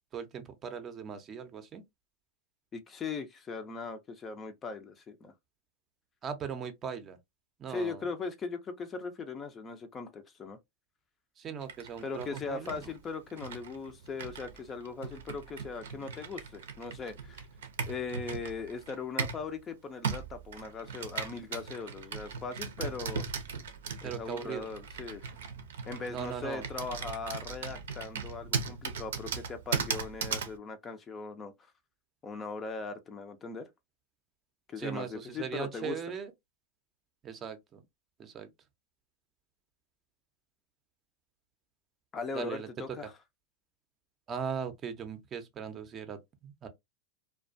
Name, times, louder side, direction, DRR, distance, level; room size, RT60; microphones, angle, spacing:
voice 1, 0.1-1.8 6.2-7.2 7.6-8.0 11.4-12.8 24.0-24.7 26.1-26.6 34.8-36.3 37.2-37.8 38.2-38.5 42.3-42.7 44.3-46.2 46.4-46.7, right 7 dB, 30° right, 0.6 m, -39 dB
voice 2, 2.7-5.3 7.7-10.6 12.0-17.4 17.9-23.3 24.0-25.3 25.9-31.5 32.2-33.7 34.7-36.0 42.1-43.1, left 4 dB, 25° left, 0.5 m, -39 dB
Computer keyboard, 11.6-19.5 20.0-30.6, right 6 dB, 80° right, 0.5 m, -38 dB
2.3 x 2.2 x 2.5 m
hypercardioid pair, 105°, 0 cm